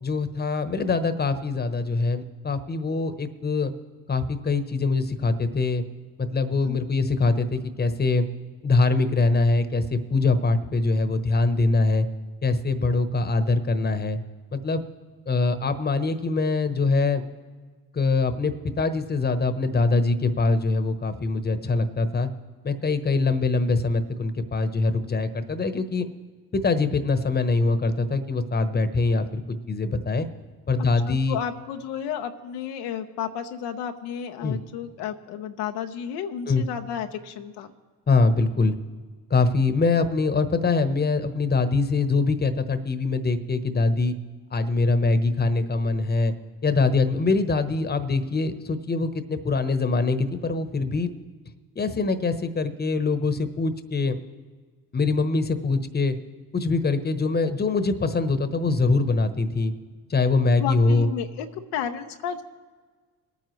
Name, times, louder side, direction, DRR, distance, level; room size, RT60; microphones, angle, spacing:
voice 1, 0.0-3.7 4.1-5.8 6.2-8.2 8.6-12.1 12.4-14.2 14.5-14.8 15.3-17.2 17.9-22.3 22.6-26.1 26.5-29.4 29.7-30.3 30.7-31.4 34.4-34.6 36.5-36.6 38.1-38.8 39.3-44.1 44.5-46.3 46.6-51.1 51.8-54.2 54.9-56.2 56.5-59.7 60.1-61.1, left 3 dB, 25° left, 10 dB, 1.0 m, -23 dB
voice 2, 30.8-37.7 60.6-61.5 61.7-62.4, left 9 dB, 85° left, 5 dB, 0.8 m, -32 dB
22.0 x 9.3 x 3.2 m, 1.5 s
supercardioid pair, 65°, 39 cm